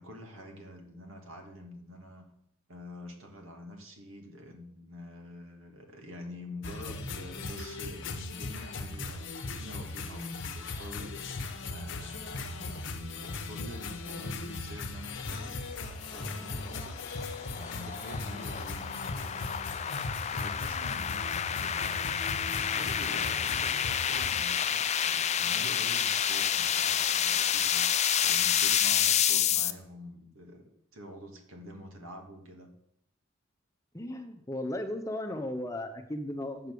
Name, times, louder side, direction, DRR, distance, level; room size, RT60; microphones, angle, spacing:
voice 1, 0.0-2.2 2.7-19.4 20.2-32.7, equal, 80° right, 3 dB, 2.3 m, -47 dB
sound 1, 6.6-24.4, left 3 dB, 65° left, 1.0 m, -38 dB
sound 2, 15.8-29.7, left 9 dB, 35° left, 0.5 m, -29 dB
voice 2, 33.9-36.7, left 1 dB, 15° left, 5 dB, 0.9 m, -36 dB
8.7 x 6.6 x 6.8 m, 0.75 s
head